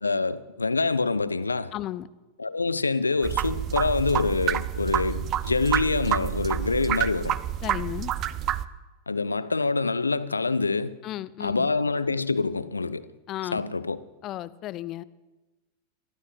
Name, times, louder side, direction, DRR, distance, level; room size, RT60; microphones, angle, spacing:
voice 1, 0.0-1.7 2.4-7.3 9.1-11.0 11.4-13.1 13.5-14.0, left 3 dB, 80° left, 0.6 m, -26 dB
voice 2, 1.7-2.1 7.6-8.1 11.0-11.7 13.3-13.6 14.2-15.0, left 14 dB, 35° left, 0.6 m, -34 dB
sound 1, 3.2-8.6, right 11 dB, 35° right, 0.6 m, -28 dB
23.0 x 14.5 x 3.3 m
figure-of-eight pair, 90°, 0 cm